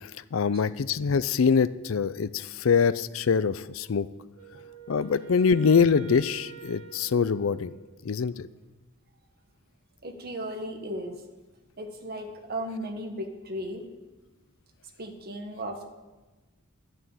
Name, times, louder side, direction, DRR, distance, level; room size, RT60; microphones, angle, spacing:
voice 1, 0.0-4.1 4.9-7.7 8.0-8.5, left 6 dB, 70° left, 16 dB, 0.5 m, -24 dB
Wind instrument woodwind instrument, 4.3-8.2, right 8 dB, 70° right, 1.3 m, -47 dB
voice 2, 5.0-5.4 10.0-11.3 11.8-13.8 15.0-15.9, equal, 50° right, 4 dB, 1.3 m, -36 dB
11.5 x 6.4 x 9.0 m, 1.2 s
head